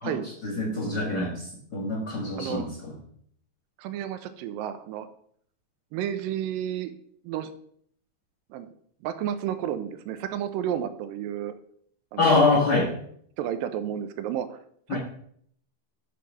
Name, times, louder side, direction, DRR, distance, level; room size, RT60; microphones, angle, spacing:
voice 1, 0.4-2.9 12.2-12.9 14.9-15.0, left 3 dB, 50° left, -3 dB, 1.2 m, -25 dB
voice 2, 2.4-2.7 3.8-5.1 5.9-6.9 7.2-7.5 8.5-8.7 9.0-11.6 12.1-12.6 13.4-14.6, right 10 dB, 80° right, 11 dB, 2.2 m, -31 dB
7.7 x 4.1 x 6.1 m, 0.63 s
omnidirectional pair, 4.2 m